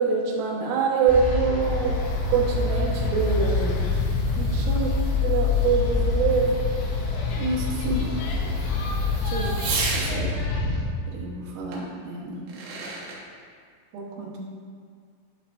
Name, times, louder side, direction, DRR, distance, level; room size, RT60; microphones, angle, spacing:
voice 1, 0.0-2.0 2.3-3.8 4.4-5.0 5.2-6.6 7.4-8.5 9.2-9.6 9.9-10.3 11.1-12.4 13.9-14.4, right 5 dB, 90° right, -4 dB, 3.7 m, -26 dB
sound 1, 1.1-10.8, left 4 dB, 75° left, 2.9 m, -25 dB
Fireworks, 1.4-10.2 11.7-11.8 12.3-13.2, right 3 dB, 75° right, 3.4 m, -37 dB
12.0 x 5.8 x 2.5 m, 2.1 s
omnidirectional pair, 5.6 m